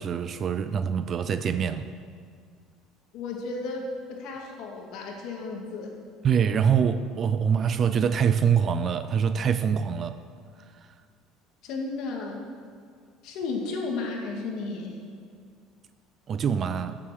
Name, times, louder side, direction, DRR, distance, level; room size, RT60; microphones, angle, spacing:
voice 1, 0.0-1.9 6.2-10.2 16.3-17.0, right 7 dB, 25° right, 0.4 m, -24 dB
voice 2, 3.1-6.0 11.6-12.5 13.2-15.0, left 3 dB, 50° left, 2.1 m, -33 dB
14.5 x 7.5 x 6.5 m
cardioid pair, 180°, 0 cm